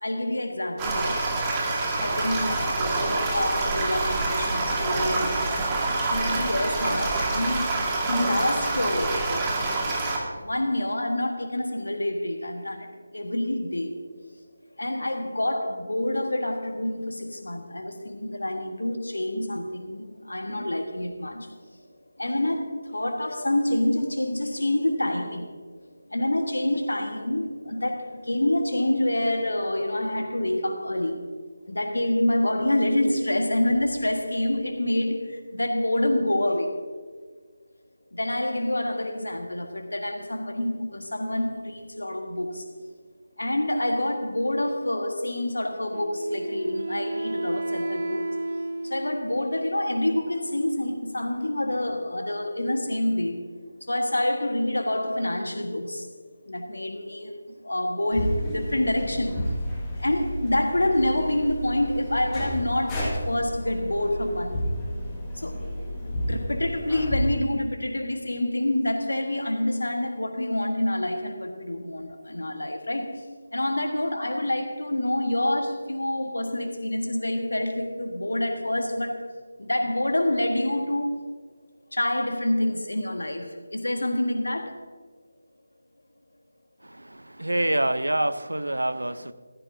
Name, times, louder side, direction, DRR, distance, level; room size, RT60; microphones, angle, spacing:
voice 1, 0.0-1.2 2.0-5.4 6.1-9.6 10.3-14.0 14.8-21.5 22.2-25.5 26.1-31.2 31.7-36.8 38.1-42.6 43.4-48.3 48.8-53.4 53.8-56.1 56.5-57.3 57.6-59.4 60.0-64.8 65.4-65.7 66.0-73.2 73.5-79.3 79.6-81.2 81.9-84.8, left 1 dB, 75° left, 1.6 m, -27 dB
sound 1, 0.8-10.2, right 2 dB, 15° right, 2.0 m, -26 dB
Wind instrument woodwind instrument, 45.9-49.5, right 2 dB, 45° right, 1.6 m, -32 dB
sound 2, 58.1-67.4, equal, 15° left, 2.0 m, -31 dB
voice 2, 86.8-89.3, right 1 dB, 80° right, 0.7 m, -26 dB
14.5 x 13.5 x 2.8 m
figure-of-eight pair, 155°, 0 cm